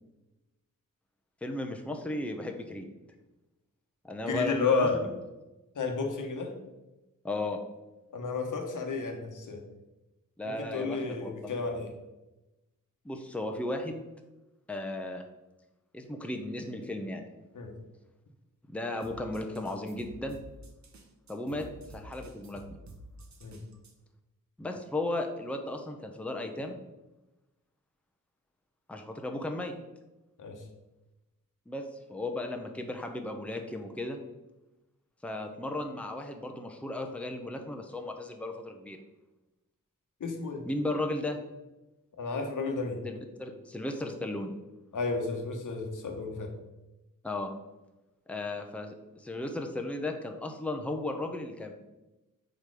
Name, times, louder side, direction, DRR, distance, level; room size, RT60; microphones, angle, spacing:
voice 1, 1.4-2.9 4.0-5.1 7.2-7.6 10.4-11.3 13.0-14.0 14.7-15.2 15.9-17.2 18.7-20.4 21.3-21.6 21.9-22.6 24.6-26.8 28.9-29.7 31.7-34.2 35.2-39.0 40.6-41.4 43.0-44.5 47.2-47.5 48.3-51.7, left 2 dB, 5° left, 3 dB, 0.7 m, -35 dB
voice 2, 4.3-5.0 5.7-6.5 8.1-9.6 10.4-11.9 17.5-17.7 23.4-23.6 30.4-30.6 40.2-40.6 42.2-43.0 44.9-46.5, left 4 dB, 65° left, 3 dB, 1.2 m, -32 dB
sound 1, 19.0-23.9, right 2 dB, 60° right, 1.0 m, -50 dB
5.1 x 4.3 x 4.8 m, 1.0 s
cardioid pair, 75°, 33 cm